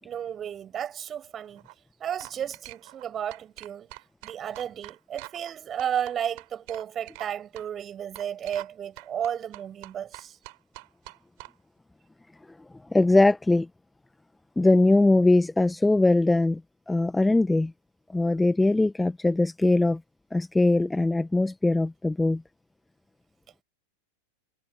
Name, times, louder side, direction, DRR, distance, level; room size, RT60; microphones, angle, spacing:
voice 1, 0.0-1.6 2.0-3.9 4.2-10.4, right 9 dB, 25° right, 6.2 m, -33 dB
sound 1, 1.4-1.7 2.2-3.0 3.3-5.5 5.8-7.3 7.5-7.7 8.1-8.7 9.0-11.5, right 36 dB, 45° right, 6.0 m, -45 dB
voice 2, 12.9-13.7 14.6-16.6 16.9-17.7 18.1-20.0 20.3-22.4, left 2 dB, 5° left, 1.4 m, -21 dB
figure-of-eight pair, 90°, 0 cm